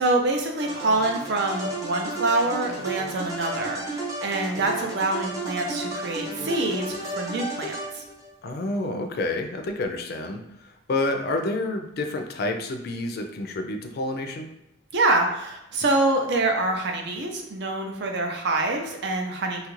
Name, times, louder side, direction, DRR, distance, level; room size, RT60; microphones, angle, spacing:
voice 1, 0.0-8.0 14.9-19.7, right 2 dB, 60° right, 3 dB, 0.5 m, -25 dB
sound 1, 0.6-8.3, right 2 dB, 20° right, 0.7 m, -33 dB
voice 2, 8.4-14.5, left 2 dB, 55° left, 5 dB, 0.4 m, -29 dB
2.8 x 2.4 x 3.0 m, 0.88 s
head